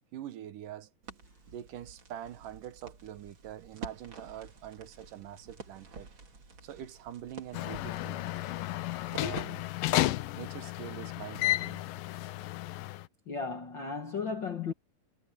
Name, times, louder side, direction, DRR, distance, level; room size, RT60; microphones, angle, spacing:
voice 1, 0.1-0.9 1.5-6.1 6.6-8.2 9.1-9.6 10.4-11.8, right 11 dB, 75° right, 2.7 m, -44 dB
Crackle, 1.0-10.2, right 4 dB, 35° right, 3.4 m, -49 dB
sound 1, 7.5-13.1, left 16 dB, 85° left, 2.5 m, -33 dB
voice 2, 13.3-14.7, left 5 dB, 45° left, 1.7 m, -35 dB
omnidirectional pair, 3.9 m